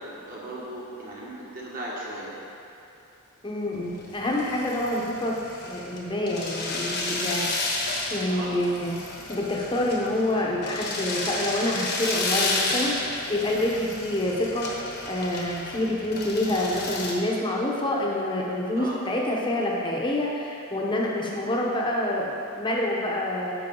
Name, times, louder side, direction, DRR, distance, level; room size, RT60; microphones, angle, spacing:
voice 1, 0.0-2.4 8.3-8.7 9.1-9.2 18.8-19.0, right 1 dB, 40° right, -6 dB, 1.8 m, -37 dB
voice 2, 3.4-5.3 5.6-7.5 8.1-9.0 9.3-14.6 15.0-23.5, left 1 dB, 20° left, -3 dB, 1.0 m, -27 dB
sound 1, 3.7-17.1, left 2 dB, 50° left, 1.2 m, -32 dB
9.9 x 6.6 x 3.9 m, 2.6 s
head